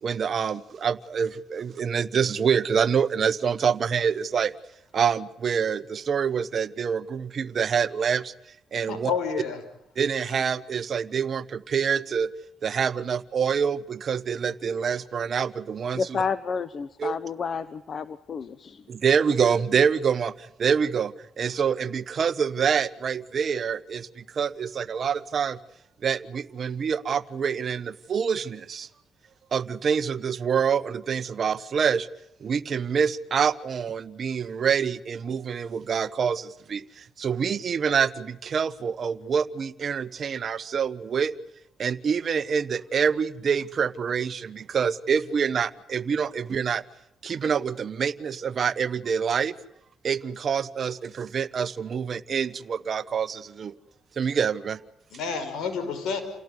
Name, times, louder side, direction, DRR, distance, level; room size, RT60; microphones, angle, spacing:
voice 1, 0.0-4.5 4.9-8.3 8.7-9.1 10.0-12.3 12.6-16.2 17.0-17.2 18.9-25.6 26.0-28.9 29.5-32.1 32.4-41.3 41.8-46.8 47.2-49.6 50.0-53.7 54.2-54.8, right 7 dB, 55° right, 14 dB, 1.3 m, -26 dB
voice 2, 8.9-9.6 10.3-10.4 55.1-56.2, left 5 dB, 80° left, 8 dB, 6.0 m, -29 dB
voice 3, 15.9-18.8, left 5 dB, 55° left, 14 dB, 1.2 m, -30 dB
29.5 x 17.5 x 9.7 m, 0.78 s
cardioid pair, 70°, 0 cm